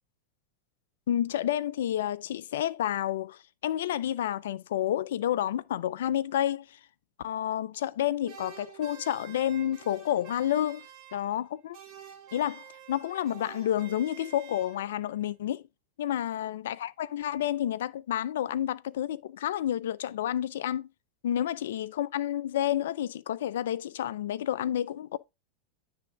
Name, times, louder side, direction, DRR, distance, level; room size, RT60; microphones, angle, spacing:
voice 1, 1.1-6.8 7.2-10.9 11.1-11.8 12.3-15.6 16.0-20.9 21.2-25.2, left 11 dB, 70° left, 0.4 m, -30 dB
sound 1, 8.2-11.5 11.7-15.1, right 10 dB, 45° right, 2.1 m, -49 dB
9.6 x 3.5 x 3.8 m
hypercardioid pair, 95°, 0 cm